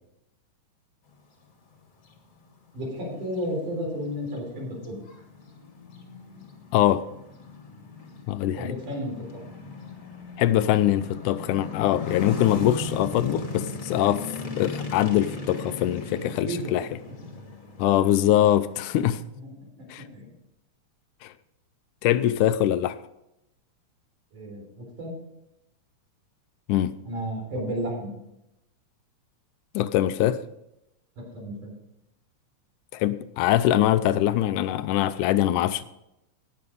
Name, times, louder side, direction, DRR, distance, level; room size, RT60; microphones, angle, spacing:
sound 1, 2.1-2.2 2.7-19.1, left 3 dB, 35° left, 1.5 m, -38 dB
voice 1, 2.7-5.0 8.6-9.4 16.5-16.8 19.3-20.3 24.3-25.1 27.1-28.1 31.2-31.7, equal, 85° right, -1 dB, 5.6 m, -33 dB
voice 2, 6.7-7.1 8.3-8.7 10.4-14.3 14.6-16.9 17.8-19.2 19.9-20.0 21.2-21.3 22.0-23.0 26.7-27.0 29.7-30.4 32.9-35.8, left 12 dB, 90° left, 13 dB, 2.2 m, -23 dB
18.0 x 6.8 x 5.3 m, 0.87 s
omnidirectional pair, 3.5 m